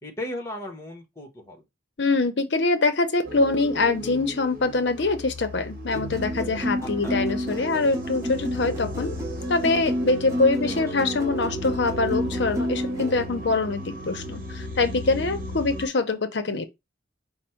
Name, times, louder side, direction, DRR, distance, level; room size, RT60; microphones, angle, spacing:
voice 1, 0.0-1.6 6.8-7.2 10.6-10.8, left 1 dB, 15° left, 1.0 m, -36 dB
voice 2, 2.0-9.1 9.5-16.7, left 3 dB, 65° left, 0.6 m, -24 dB
sound 1, 3.2-15.9, equal, 45° right, 1.1 m, -35 dB
sound 2, 5.9-13.2, equal, 15° right, 1.0 m, -31 dB
5.1 x 2.1 x 4.4 m
head